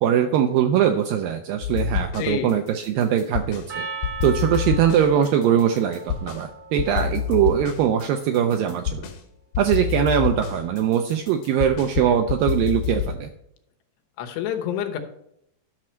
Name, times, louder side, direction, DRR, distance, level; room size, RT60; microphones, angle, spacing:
voice 1, 0.0-3.9 4.2-9.1 9.6-13.3, right 9 dB, 80° right, 6 dB, 2.0 m, -21 dB
sound 1, 1.6-2.5 2.8-3.7 4.0-6.4 6.8-9.2 9.5-13.2, left 8 dB, 70° left, 2.6 m, -28 dB
voice 2, 2.2-2.5 14.2-15.0, left 9 dB, 90° left, 5 dB, 3.2 m, -27 dB
Percussion, 3.7-8.2, right 5 dB, 60° right, 1.3 m, -38 dB
12.0 x 6.2 x 4.4 m, 0.75 s
omnidirectional pair, 4.7 m